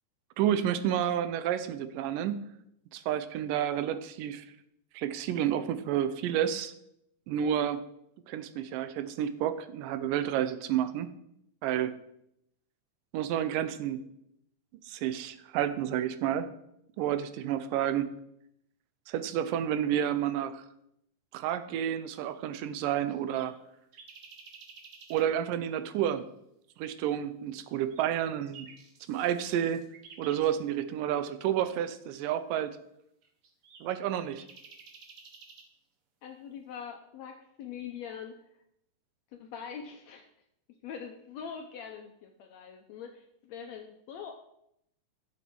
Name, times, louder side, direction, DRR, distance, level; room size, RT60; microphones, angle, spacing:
voice 1, 0.4-2.4 2.9-4.4 4.9-6.7 7.3-7.8 8.3-11.1 11.6-11.9 13.1-14.0 14.9-16.5 17.0-18.1 19.1-20.6 21.3-23.6 25.1-26.3 26.8-28.7 29.1-29.8 30.2-32.8 33.8-34.5, right 10 dB, 85° right, 12 dB, 2.3 m, -30 dB
sound 1, 22.7-25.3 27.7-30.5 33.2-35.7, right 5 dB, 55° right, 1.7 m, -52 dB
voice 2, 36.2-38.4 39.4-40.3 40.8-44.3, left 7 dB, 75° left, 4 dB, 1.6 m, -43 dB
11.0 x 7.1 x 4.6 m, 0.77 s
omnidirectional pair, 3.8 m